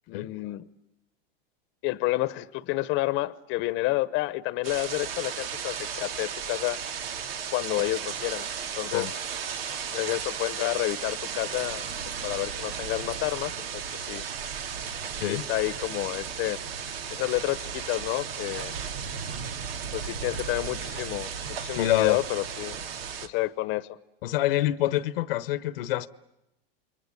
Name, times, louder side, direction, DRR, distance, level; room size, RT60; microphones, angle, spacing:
voice 1, 0.1-0.6 1.8-6.8 7.5-8.5 8.8-9.1 9.9-11.8 12.2-14.2 15.3-16.6 17.1-18.7 19.9-22.8 23.2-24.0, left 19 dB, 40° left, 1.0 m, -30 dB
sound 1, 4.6-23.3, right 7 dB, 85° right, 2.1 m, -35 dB
voice 2, 21.7-22.2 24.2-26.1, left 15 dB, 70° left, 1.0 m, -26 dB
29.0 x 23.0 x 8.5 m
supercardioid pair, 130°, 29 cm